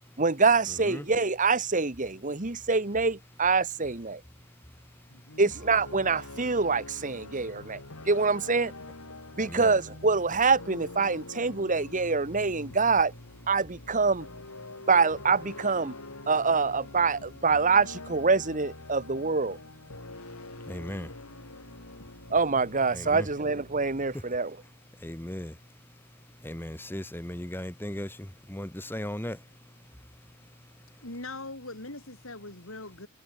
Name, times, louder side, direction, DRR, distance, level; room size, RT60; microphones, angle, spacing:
voice 1, 0.2-4.2 5.4-7.8 8.1-8.7 9.4-13.1 13.5-14.3 14.9-15.9 16.3-19.6 22.3-24.6, right 4 dB, 35° right, 1.5 m, -25 dB
voice 2, 5.1-5.5 31.0-33.1, left 2 dB, 65° left, 5.7 m, -41 dB
sound 1, 5.5-24.7, left 2 dB, 85° left, 4.4 m, -45 dB
voice 3, 9.4-9.7 20.7-21.1 22.9-23.3 25.0-25.5 26.4-28.1 28.5-29.4, left 1 dB, 10° left, 1.3 m, -36 dB
head